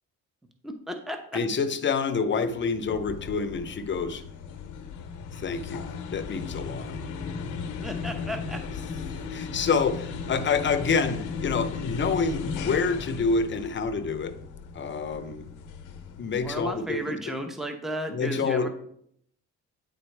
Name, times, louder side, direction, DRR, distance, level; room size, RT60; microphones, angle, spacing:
voice 1, 0.6-1.2 7.8-8.6 16.4-18.7, equal, ahead, 5 dB, 0.7 m, -34 dB
voice 2, 1.3-4.2 5.3-7.0 9.3-14.4 14.7-15.5 16.2-17.3 18.1-18.7, left 5 dB, 40° left, 10 dB, 0.7 m, -27 dB
sound 1, 2.5-16.9, left 5 dB, 90° left, 0.7 m, -36 dB
9.3 x 4.0 x 3.3 m, 0.67 s
cardioid pair, 90°, 30 cm